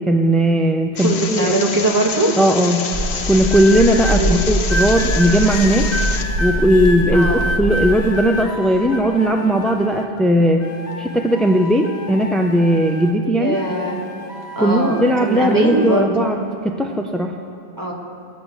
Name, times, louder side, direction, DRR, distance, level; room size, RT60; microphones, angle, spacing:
voice 1, 0.1-1.6 2.4-2.8 3.3-5.9 6.4-10.7 11.0-13.6 14.6-16.4 16.6-17.3, equal, ahead, 3 dB, 0.4 m, -17 dB
sound 1, 1.0-6.2, left 5 dB, 80° left, 1.1 m, -28 dB
voice 2, 1.0-2.3 4.2-4.3 7.1-7.4 13.3-14.0 14.5-16.3 17.8-17.9, right 2 dB, 20° right, -1 dB, 1.6 m, -21 dB
sound 2, 2.9-8.0, equal, 45° right, 1.9 m, -23 dB
sound 3, 3.5-4.2 4.7-10.2 10.6-13.2 13.5-16.1 16.8-17.1, left 1 dB, 45° left, 0.9 m, -29 dB
18.0 x 5.9 x 8.1 m, 2.7 s
omnidirectional pair, 1.1 m